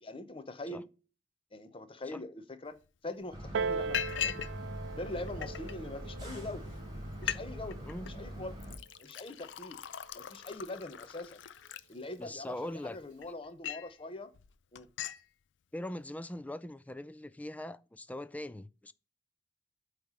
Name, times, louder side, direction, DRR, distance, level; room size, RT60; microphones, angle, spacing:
voice 1, 0.0-0.9 1.5-2.8 3.0-4.3 4.9-6.7 7.2-8.5 9.0-9.8 10.1-11.4 11.9-14.3 14.7-14.9, left 2 dB, 30° left, 0.8 m, -43 dB
Liquid, 2.8-2.9 3.2-3.5 3.9-4.5 4.8-5.7 6.4-6.5 6.8-6.9 7.1-7.4 7.7-8.1 8.6-12.4 12.9-13.9 14.3-14.5 14.8-15.2, left 9 dB, 75° left, 0.5 m, -39 dB
sound 1, 3.3-8.8, equal, 25° right, 3.8 m, -43 dB
Piano, 3.5-8.7 9.6-9.7, right 4 dB, 80° right, 0.4 m, -40 dB
voice 2, 12.2-13.0 15.7-18.9, left 1 dB, 10° left, 0.4 m, -41 dB
8.6 x 3.3 x 5.5 m
head